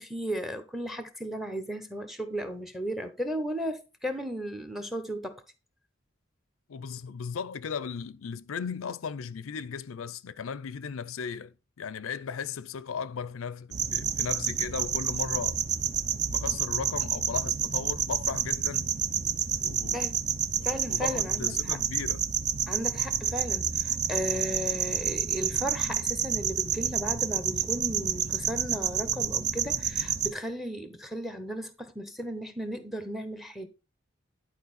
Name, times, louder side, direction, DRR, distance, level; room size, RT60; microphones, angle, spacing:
voice 1, 0.0-5.4 19.9-20.2 20.6-21.8 22.7-33.7, equal, ahead, 0.9 m, -35 dB
voice 2, 6.7-15.6 16.3-18.9 19.6-20.0 20.6-22.2, left 6 dB, 90° left, 0.5 m, -36 dB
sound 1, 13.7-30.3, right 8 dB, 35° right, 0.5 m, -29 dB
11.0 x 4.4 x 4.1 m
head